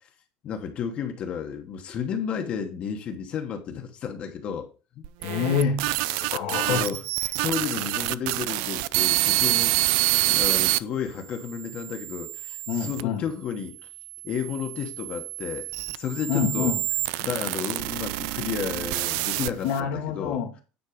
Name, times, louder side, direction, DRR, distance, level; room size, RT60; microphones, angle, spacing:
voice 1, 0.4-4.7 5.0-5.1 6.6-7.0 7.4-9.7 10.3-13.8 14.2-16.7 17.2-20.4, left 7 dB, 35° left, 1.1 m, -32 dB
sound 1, 5.0-10.8 11.5-13.0 13.8-19.8, right 19 dB, 80° right, 0.4 m, -27 dB
voice 2, 5.2-6.9 12.7-13.2 16.3-16.8 19.6-20.6, left 7 dB, 75° left, 1.5 m, -27 dB
9.6 x 4.4 x 5.1 m
cardioid pair, 175°, 3 cm